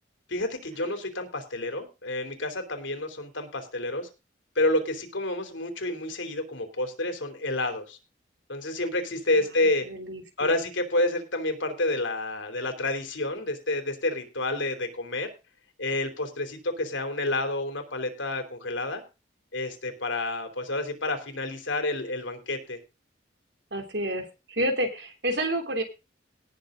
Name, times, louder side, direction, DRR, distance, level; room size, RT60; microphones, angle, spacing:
voice 1, 0.3-4.1 4.6-8.0 8.5-9.9 10.4-15.3 15.8-19.0 19.5-22.8, left 2 dB, 85° left, 6 dB, 3.4 m, -29 dB
voice 2, 9.6-10.5 23.7-25.8, right 1 dB, 60° right, 4 dB, 3.2 m, -30 dB
18.5 x 7.1 x 3.9 m, 0.29 s
head